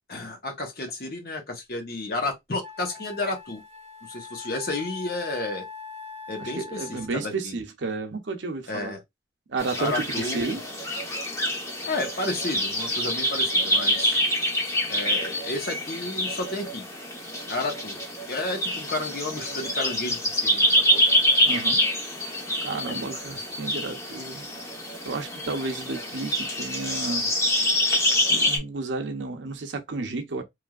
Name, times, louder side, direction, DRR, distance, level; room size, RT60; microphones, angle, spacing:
voice 1, 0.1-3.6 4.0-5.6 6.3-7.6 8.7-9.0 9.8-10.6 11.9-14.2 14.9-16.8 17.5-18.0 18.3-20.7 20.9-21.0, left 2 dB, 55° left, 1.0 m, -31 dB
Wind instrument woodwind instrument, 2.0-2.1 2.6-7.3, left 5 dB, 40° right, 0.5 m, -42 dB
voice 2, 6.4-8.9 9.5-10.6 21.5-21.9 22.6-24.4 25.0-27.3 28.3-30.4, right 3 dB, 85° right, 0.7 m, -32 dB
sound 1, 9.6-28.6, left 1 dB, 15° left, 0.9 m, -26 dB
3.2 x 2.6 x 2.4 m
head